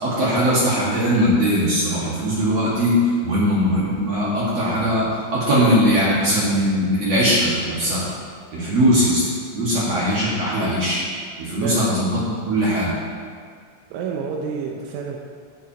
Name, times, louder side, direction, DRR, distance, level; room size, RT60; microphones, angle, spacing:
voice 1, 0.0-5.1 5.3-8.1 8.5-9.2 9.5-11.0 11.4-12.9, equal, 55° right, -8 dB, 2.0 m, -20 dB
voice 2, 11.6-11.9 13.9-15.2, right 6 dB, 90° right, 0 dB, 3.3 m, -28 dB
16.0 x 7.3 x 3.0 m, 2.1 s
omnidirectional pair, 5.5 m